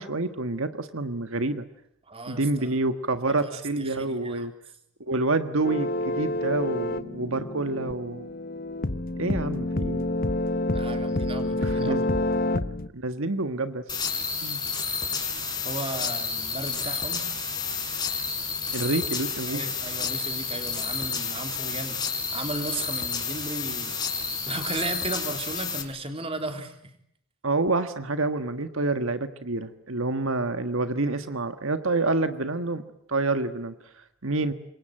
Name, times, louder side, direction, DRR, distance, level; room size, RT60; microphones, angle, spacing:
voice 1, 0.0-1.6 2.3-4.5 5.0-8.3 9.2-10.1 11.6-12.0 12.5-12.6 12.9-13.8 14.4-14.6 18.7-19.6 27.4-32.8 33.1-34.5, right 2 dB, 70° right, 10 dB, 1.6 m, -28 dB
voice 2, 2.1-2.7 3.5-3.6 3.8-4.5 10.7-12.0 15.6-17.3 19.5-22.0 22.3-26.8, right 2 dB, 25° right, 6 dB, 3.6 m, -35 dB
sound 1, 5.6-12.9, left 1 dB, 40° left, 1.1 m, -28 dB
sound 2, 13.9-25.8, left 5 dB, 20° left, 4.9 m, -30 dB
27.0 x 23.5 x 9.0 m, 0.72 s
head